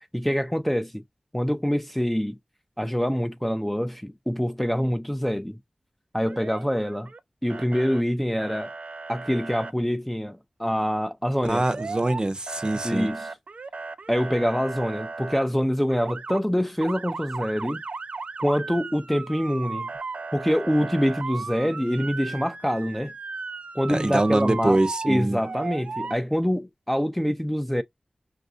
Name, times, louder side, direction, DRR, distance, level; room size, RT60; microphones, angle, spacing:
voice 1, 0.1-1.0 1.3-2.4 2.8-5.6 6.1-7.1 7.4-8.7 9.1-11.6 12.8-13.3 14.1-17.8 18.4-19.9 20.3-23.1 23.7-24.8 25.1-27.8, equal, 5° left, 0.5 m, -25 dB
Motor vehicle (road) / Siren, 6.2-7.2 7.5-8.0 8.4-9.7 11.5-12.2 12.5-15.4 15.9-16.4 16.8-26.2, right 4 dB, 75° right, 0.5 m, -36 dB
voice 2, 11.4-13.1 23.9-25.4, right 2 dB, 35° right, 0.7 m, -24 dB
5.8 x 2.6 x 2.5 m
cardioid pair, 45°, 2 cm